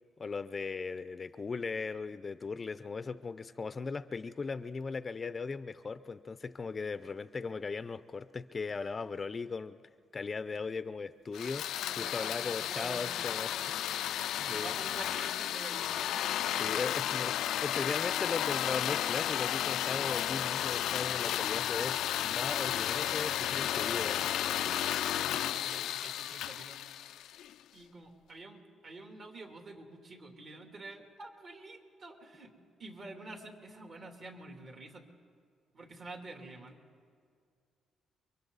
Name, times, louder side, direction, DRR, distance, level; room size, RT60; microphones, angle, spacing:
voice 1, 0.2-9.8 10.1-11.7 12.0-14.0 14.4-14.7 16.6-24.4, left 4 dB, 35° left, 13 dB, 0.6 m, -38 dB
sound 1, 11.3-27.5, left 11 dB, 80° left, 0.4 m, -33 dB
voice 2, 11.8-13.7 14.3-16.8 24.4-26.8 27.7-32.5 32.8-35.0 35.7-36.8, right 2 dB, 50° right, 2 dB, 3.0 m, -48 dB
29.5 x 23.5 x 4.1 m, 2.1 s
cardioid pair, 90°, 0 cm